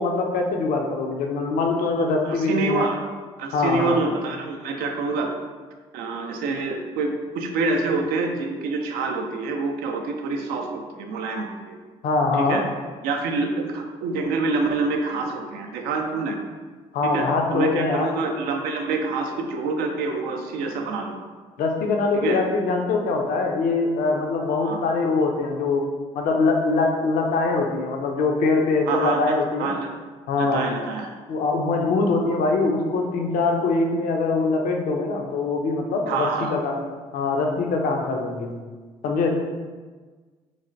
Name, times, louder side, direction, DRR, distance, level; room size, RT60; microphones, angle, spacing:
voice 1, 0.0-2.9 3.5-4.0 12.0-12.6 16.9-18.1 21.6-25.9 26.1-29.7 30.3-30.6 31.3-36.8 37.1-38.5 39.0-39.3, left 3 dB, 60° left, 1 dB, 0.4 m, -23 dB
voice 2, 2.3-3.0 3.4-5.4 5.9-11.8 12.4-12.6 13.0-16.4 17.1-21.3 22.2-22.4 24.6-24.8 28.9-29.3 29.6-29.9 30.4-31.1 36.1-36.5, right 3 dB, 70° right, 3 dB, 0.4 m, -26 dB
3.2 x 2.1 x 2.5 m, 1.4 s
hypercardioid pair, 50°, 16 cm